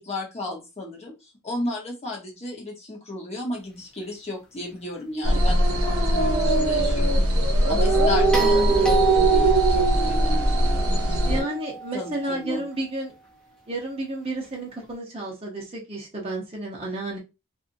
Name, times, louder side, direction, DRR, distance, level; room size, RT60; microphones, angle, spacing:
voice 1, 0.0-7.2 7.7-10.4 11.0-11.5 11.9-12.6, left 1 dB, 30° left, -2 dB, 0.9 m, -34 dB
sound 1, 5.2-11.4, right 1 dB, 75° right, 0.7 m, -20 dB
sound 2, 8.3-12.6 14.8-14.9, right 4 dB, 5° left, 0.5 m, -28 dB
voice 2, 8.4-8.8 11.2-13.1 13.7-17.2, right 2 dB, 25° right, -3 dB, 0.9 m, -31 dB
2.7 x 2.6 x 2.6 m, 0.26 s
head